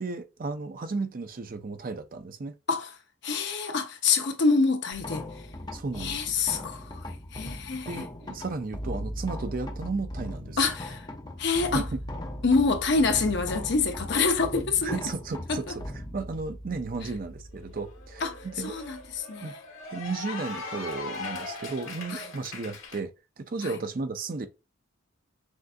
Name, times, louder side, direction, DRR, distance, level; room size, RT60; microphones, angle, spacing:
voice 1, 0.0-2.5 5.7-6.5 7.7-10.7 11.7-12.0 14.8-15.8 16.1-18.8 19.4-19.5 19.9-23.1 23.4-24.5, right 3 dB, 45° right, 0.5 m, -34 dB
voice 2, 3.2-5.2 6.0-8.1 10.6-11.0 11.4-11.9 12.4-15.0 15.5-15.8 18.2-19.5 22.1-22.2 23.6-23.7, left 4 dB, 55° left, 0.7 m, -26 dB
sound 1, 4.9-19.2, equal, 20° left, 0.6 m, -39 dB
Cheering / Applause, 17.6-23.0, left 3 dB, 85° left, 1.4 m, -40 dB
6.3 x 2.5 x 2.5 m
head